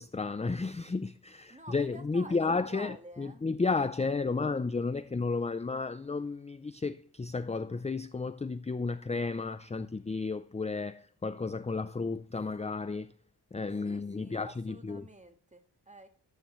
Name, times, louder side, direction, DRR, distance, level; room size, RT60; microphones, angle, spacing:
voice 1, 0.0-13.1 13.5-15.0, left 4 dB, 15° left, 0.5 m, -33 dB
voice 2, 1.5-3.4 13.8-16.1, right 2 dB, 15° right, 1.7 m, -49 dB
14.0 x 12.0 x 3.1 m
wide cardioid pair, 115°, 41 cm